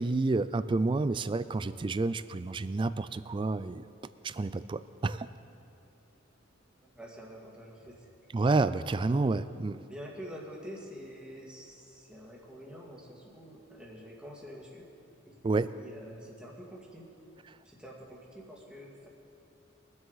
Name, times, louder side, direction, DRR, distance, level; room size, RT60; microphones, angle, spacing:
voice 1, 0.0-3.8 4.2-5.3 8.3-9.8 15.4-15.7, right 3 dB, 25° right, 14 dB, 0.3 m, -29 dB
voice 2, 6.8-8.1 9.8-14.8 15.3-15.4 15.7-17.0 17.6-19.1, equal, 5° right, -4 dB, 1.9 m, -47 dB
22.5 x 7.8 x 4.0 m, 2.7 s
head